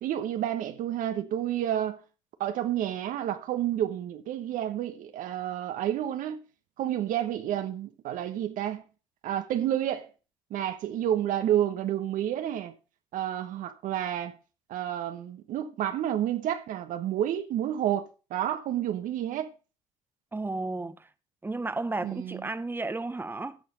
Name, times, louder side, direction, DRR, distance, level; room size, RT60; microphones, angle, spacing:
voice 1, 0.0-2.0 2.4-6.4 6.8-8.8 9.2-10.1 10.5-12.7 13.1-14.4 14.7-19.5 22.0-22.5, right 11 dB, 60° right, 1.2 m, -30 dB
voice 2, 20.3-21.1 21.4-23.6, right 2 dB, 15° right, 1.0 m, -33 dB
13.0 x 6.2 x 5.3 m
hypercardioid pair, 65°, 16 cm